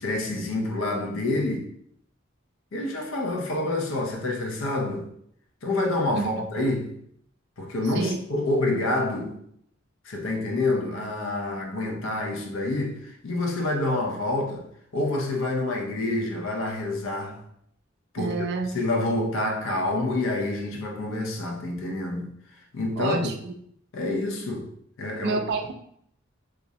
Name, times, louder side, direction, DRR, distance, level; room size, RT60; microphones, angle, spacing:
voice 1, 0.0-1.7 2.7-5.1 5.6-7.0 7.6-9.4 10.0-14.7 14.9-17.4 18.1-18.3 18.7-22.3 22.7-23.3 23.9-24.7 25.0-25.4, left 2 dB, 75° left, 0.5 m, -27 dB
voice 2, 18.2-18.7 23.0-23.5 25.2-25.7, right 4 dB, 55° right, 0.3 m, -28 dB
2.4 x 2.0 x 2.6 m
head